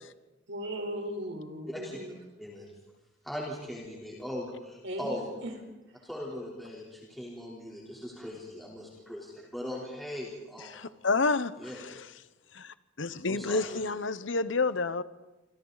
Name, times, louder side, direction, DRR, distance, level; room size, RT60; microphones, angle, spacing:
voice 1, 0.5-2.2 4.8-5.5, equal, 70° right, 4.1 m, -37 dB
voice 2, 1.7-2.0 2.4-2.7 3.2-5.3 6.0-10.8 11.6-11.8 13.3-13.8, left 1 dB, ahead, 3.7 m, -39 dB
voice 3, 10.7-12.1 12.5-15.0, left 3 dB, 75° left, 1.0 m, -30 dB
28.0 x 26.0 x 4.1 m
head